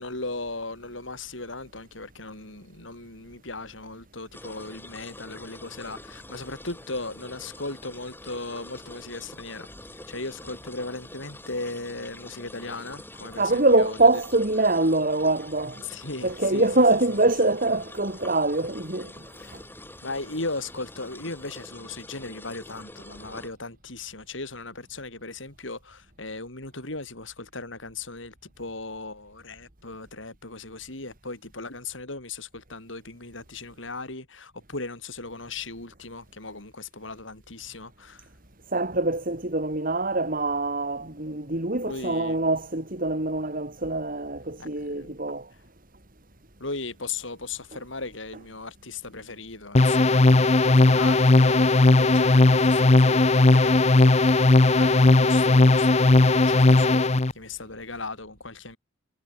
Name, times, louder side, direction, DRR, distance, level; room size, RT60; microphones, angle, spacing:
voice 1, 0.0-9.7 10.1-14.0 15.8-16.8 19.4-19.5 20.0-38.3 41.8-42.4 44.6-45.1 46.6-58.8, left 3 dB, 70° left, 6.2 m, -37 dB
sound 1, 4.3-23.5, left 1 dB, 10° left, 7.6 m, -45 dB
voice 2, 13.4-15.8 16.2-19.1 38.7-45.5, right 2 dB, 45° right, 3.5 m, -24 dB
sound 2, 49.7-57.3, left 2 dB, 35° left, 0.8 m, -17 dB
head